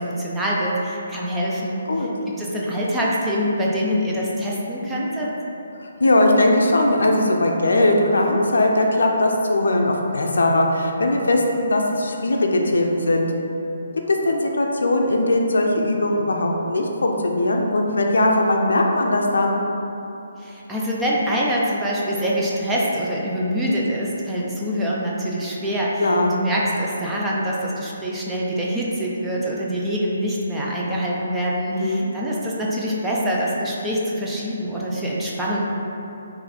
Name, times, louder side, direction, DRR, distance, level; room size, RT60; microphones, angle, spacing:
voice 1, 0.0-1.8 2.4-5.3 20.4-35.6, equal, 10° right, -6 dB, 0.6 m, -25 dB
voice 2, 5.8-13.3 14.1-19.6 26.0-26.4 31.7-32.1, left 1 dB, 80° left, 1 dB, 0.5 m, -19 dB
3.8 x 2.7 x 4.2 m, 3.0 s
hypercardioid pair, 150°, 0 cm